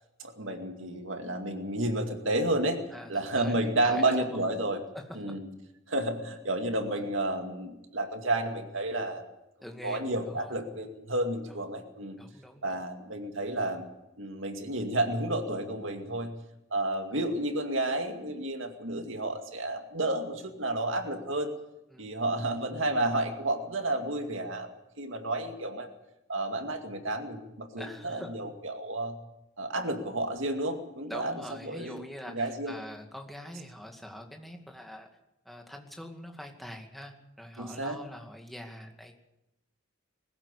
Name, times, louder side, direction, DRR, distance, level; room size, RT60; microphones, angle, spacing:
voice 1, 0.2-2.8 3.1-4.8 5.2-5.4 5.9-9.2 9.8-12.2 12.6-13.9 14.2-16.3 16.7-21.5 22.0-24.7 25.0-25.9 26.3-29.2 29.6-31.3 31.7-32.7 37.6-38.0, right 1 dB, 70° right, 5 dB, 2.3 m, -31 dB
voice 2, 2.9-4.4 4.9-5.3 6.9-7.1 9.6-10.6 11.5-11.6 12.2-12.8 17.1-17.2 21.9-22.1 27.8-28.4 31.1-35.1 35.4-39.2, left 1 dB, ahead, 2 dB, 2.2 m, -44 dB
21.0 x 15.0 x 8.4 m, 0.91 s
head